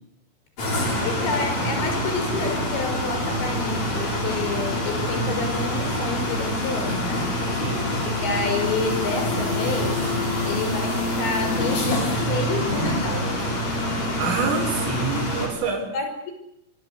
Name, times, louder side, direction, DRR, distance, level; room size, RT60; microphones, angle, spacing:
sound 1, 0.6-15.5, left 1 dB, 35° left, 7.6 m, -25 dB
voice 1, 0.8-7.3 8.0-10.0 10.5-13.3 15.9-16.3, left 3 dB, 60° left, 5 dB, 7.7 m, -29 dB
voice 2, 7.6-8.0 14.2-15.9, right 4 dB, 80° right, 5 dB, 7.8 m, -27 dB
25.5 x 23.0 x 8.3 m, 0.80 s
omnidirectional pair, 5.8 m